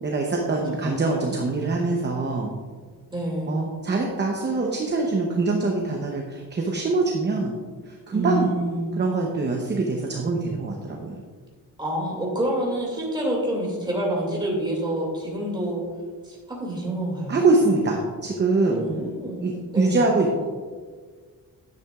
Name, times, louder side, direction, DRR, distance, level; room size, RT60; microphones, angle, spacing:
voice 1, 0.0-2.5 3.5-7.5 7.9-8.5 9.0-11.2 17.3-18.8 19.4-20.4, right 3 dB, 30° right, 1 dB, 0.8 m, -24 dB
voice 2, 3.1-3.5 8.1-8.9 11.8-15.8 16.2-17.4 18.7-19.4 19.7-20.0, right 1 dB, 10° right, -3 dB, 2.3 m, -27 dB
10.5 x 8.8 x 2.4 m, 1.6 s
wide cardioid pair, 165°, 36 cm